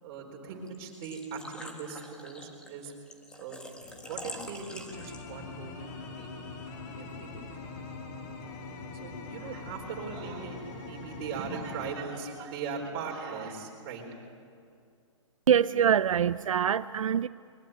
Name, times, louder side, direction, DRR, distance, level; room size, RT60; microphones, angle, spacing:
voice 1, 0.0-2.9 3.4-3.6 4.0-6.3 7.0-7.6 9.0-14.2, right 5 dB, 30° right, 1 dB, 4.2 m, -39 dB
Engine / Trickle dribble / Fill (with liquid), 0.7-5.5, left 1 dB, 5° left, 1.5 m, -45 dB
sound 1, 3.8-12.0, left 3 dB, 30° left, 2.4 m, -43 dB
voice 2, 15.5-17.3, right 8 dB, 85° right, 14 dB, 0.5 m, -24 dB
22.0 x 21.0 x 9.2 m, 2.3 s
hypercardioid pair, 160°, 17 cm